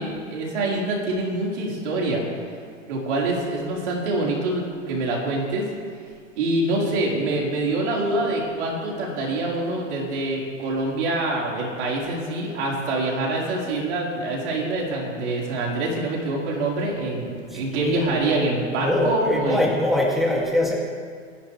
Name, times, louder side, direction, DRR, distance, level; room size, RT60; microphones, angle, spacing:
voice 1, 0.0-2.2 2.9-5.7 6.4-19.7, right 2 dB, 60° right, -3 dB, 4.8 m, -25 dB
voice 2, 17.5-18.0 18.3-18.5 18.8-20.7, left 1 dB, ahead, -3 dB, 2.6 m, -23 dB
26.5 x 11.5 x 3.4 m, 2.1 s
hypercardioid pair, 115°, 38 cm